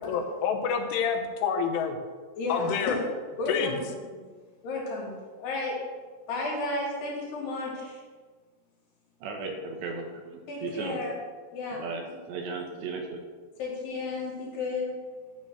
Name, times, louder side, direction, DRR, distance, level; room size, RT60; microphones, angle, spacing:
voice 1, 0.1-2.0 2.5-3.0 3.5-3.7, left 6 dB, 85° left, 5 dB, 3.5 m, -28 dB
voice 2, 2.4-3.0 3.4-4.3 4.6-5.1 5.4-5.8 6.3-8.0 10.5-11.1 11.5-11.8 13.6-14.9, left 3 dB, 60° left, -4 dB, 4.7 m, -32 dB
voice 3, 9.2-11.0 11.7-13.2, right 4 dB, 75° right, 2 dB, 3.2 m, -36 dB
11.0 x 4.5 x 7.6 m, 1.5 s
omnidirectional pair, 5.4 m